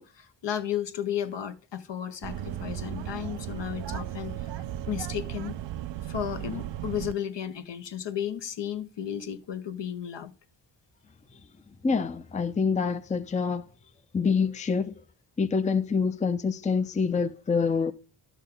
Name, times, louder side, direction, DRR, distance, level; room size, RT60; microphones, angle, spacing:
voice 1, 0.0-4.5 4.9-5.6 6.0-10.3, left 9 dB, 70° left, 1.1 m, -34 dB
sound 1, 2.2-7.1, right 12 dB, 70° right, 0.6 m, -35 dB
voice 2, 11.8-13.7 14.1-14.9 15.4-17.9, left 5 dB, 15° left, 0.5 m, -26 dB
11.0 x 6.3 x 3.8 m
cardioid pair, 80°, 45 cm